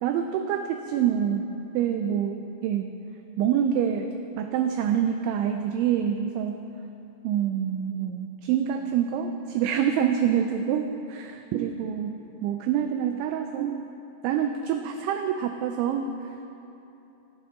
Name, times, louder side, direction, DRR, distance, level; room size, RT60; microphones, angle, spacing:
voice 1, 0.0-1.5 1.7-2.9 3.4-6.6 7.2-13.8 14.2-16.1, right 9 dB, 90° right, 6 dB, 2.6 m, -26 dB
23.0 x 9.6 x 3.7 m, 3.0 s
omnidirectional pair, 6.0 m